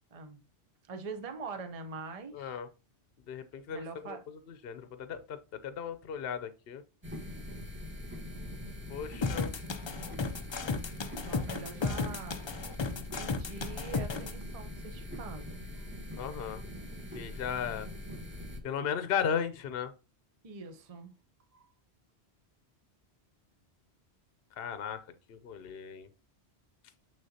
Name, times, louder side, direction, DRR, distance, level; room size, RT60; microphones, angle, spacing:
voice 1, 0.1-0.4 0.9-2.6 3.7-4.2 11.3-12.4 13.2-15.6 20.4-21.1 21.5-21.6, right 4 dB, 35° right, 0.8 m, -43 dB
voice 2, 2.3-2.7 3.3-4.2 4.6-5.4 5.6-6.8 8.9-9.5 16.2-16.6 17.1-17.9 18.6-19.9 24.6-25.0 25.3-26.1, left 7 dB, 65° left, 0.9 m, -35 dB
sound 1, 7.0-18.6, left 1 dB, 10° right, 1.2 m, -43 dB
sound 2, 9.2-14.3, left 4 dB, 40° left, 0.4 m, -34 dB
6.8 x 6.4 x 2.8 m
omnidirectional pair, 1.1 m